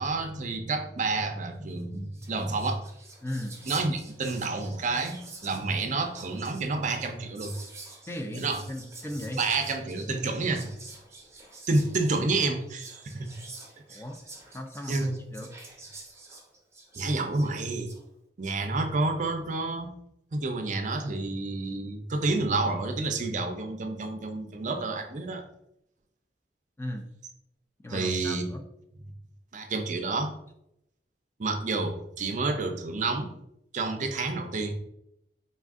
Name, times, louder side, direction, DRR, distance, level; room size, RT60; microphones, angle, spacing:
voice 1, 0.0-2.8 3.7-7.5 8.3-8.6 9.4-10.7 11.7-13.3 13.9-14.0 14.9-15.2 17.0-17.9 18.4-19.9 20.3-25.4 27.9-28.5 29.5-30.3 31.4-33.3 33.7-34.7, right 3 dB, 45° right, 5 dB, 0.5 m, -29 dB
Whispering, 1.8-1.9 2.1-18.0, right 3 dB, 15° right, 0.8 m, -48 dB
voice 2, 3.2-3.6 8.1-9.4 13.9-14.2 14.5-15.5 26.8-27.1 27.8-28.6, left 1 dB, 15° left, 4 dB, 0.4 m, -37 dB
4.1 x 2.5 x 3.6 m, 0.80 s
head